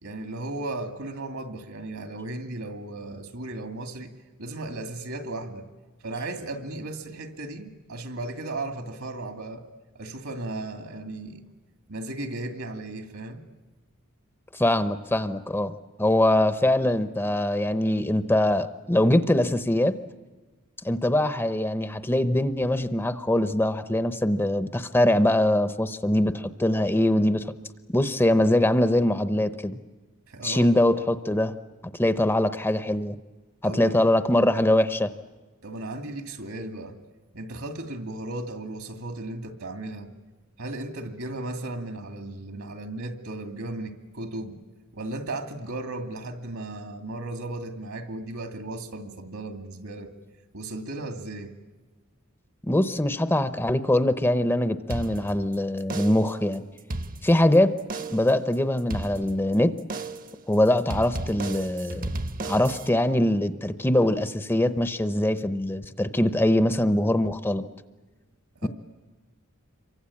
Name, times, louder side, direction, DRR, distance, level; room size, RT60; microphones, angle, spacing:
voice 1, 0.0-4.1 4.4-5.7 6.0-9.6 9.9-11.5 11.9-13.4 30.3-30.8 33.6-34.0 35.6-37.0 37.3-40.1 40.6-44.6 44.9-50.1 50.5-51.5 68.6-68.7, right 2 dB, 70° right, 6 dB, 2.5 m, -35 dB
voice 2, 14.5-15.7 16.0-19.9 20.8-27.5 27.9-29.8 30.4-31.5 31.9-33.2 33.6-35.1 52.6-56.6 57.2-57.7 58.1-59.7 60.5-62.1 62.4-67.6 68.6-68.7, left 1 dB, 10° left, 11 dB, 0.8 m, -23 dB
sound 1, 54.9-55.5 55.9-56.4 56.8-57.5 57.9-58.4 58.9-59.5 59.9-60.4 60.9-62.9, right 2 dB, 40° right, 1.0 m, -34 dB
27.0 x 24.0 x 8.6 m, 1.3 s
head